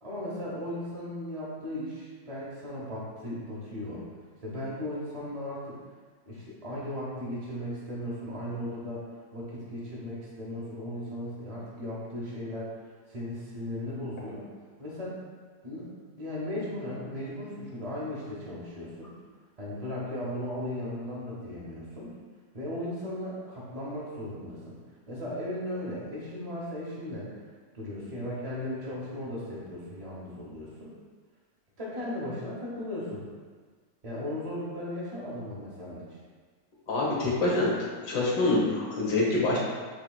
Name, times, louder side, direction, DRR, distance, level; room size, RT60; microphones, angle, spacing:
voice 1, 0.0-4.0 4.4-5.8 6.3-9.0 9.3-12.8 13.1-14.5 14.8-15.2 15.6-15.9 16.2-19.1 19.6-22.1 22.5-24.8 25.1-27.3 27.7-30.9 31.8-33.2 34.0-36.2, left 1 dB, 30° right, -7 dB, 0.7 m, -36 dB
voice 2, 36.9-37.7 38.0-39.6, left 2 dB, 75° left, -5 dB, 1.7 m, -25 dB
7.9 x 2.9 x 2.3 m, 1.5 s
omnidirectional pair, 1.9 m